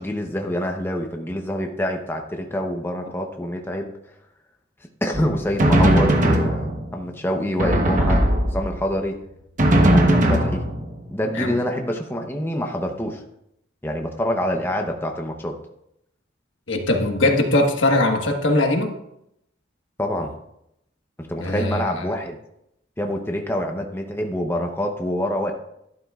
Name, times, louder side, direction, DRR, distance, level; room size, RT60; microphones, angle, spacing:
voice 1, 0.0-3.9 5.0-8.2 8.5-9.1 9.9-10.6 11.1-13.2 13.8-15.6 20.0-20.3 21.2-22.4 23.0-25.5, left 1 dB, 10° left, 3 dB, 0.9 m, -26 dB
Drum, 5.1-7.0 7.6-8.9 9.6-11.1, right 1 dB, 40° right, 1.0 m, -18 dB
voice 2, 16.7-18.9 21.4-22.1, left 2 dB, 90° left, 3 dB, 1.5 m, -21 dB
12.5 x 11.5 x 2.4 m, 0.79 s
head